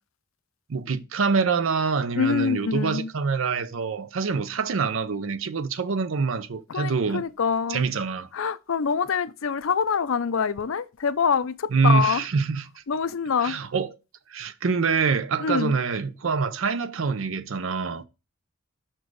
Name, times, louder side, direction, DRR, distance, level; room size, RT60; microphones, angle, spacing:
voice 1, 0.7-7.2 7.7-8.3 11.7-12.7 13.4-13.9 14.3-18.0, right 5 dB, 70° right, 0.6 m, -25 dB
voice 2, 2.2-3.1 6.7-7.8 8.3-12.2 12.9-13.6 15.4-15.7, left 6 dB, 70° left, 0.5 m, -25 dB
6.0 x 4.4 x 4.6 m
head